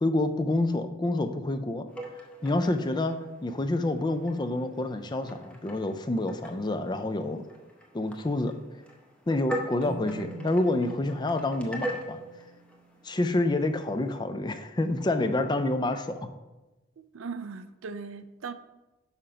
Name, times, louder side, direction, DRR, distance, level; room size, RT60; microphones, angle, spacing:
voice 1, 0.0-1.9 2.4-7.4 7.9-8.5 9.3-12.2 13.0-16.2, left 2 dB, 20° left, 0.4 m, -28 dB
sound 1, 1.9-14.2, right 1 dB, 5° left, 0.8 m, -42 dB
Keyboard (musical), 9.8-13.1, right 3 dB, 80° left, 1.7 m, -46 dB
voice 2, 17.0-18.5, right 5 dB, 75° right, 0.4 m, -39 dB
5.8 x 5.5 x 4.9 m
head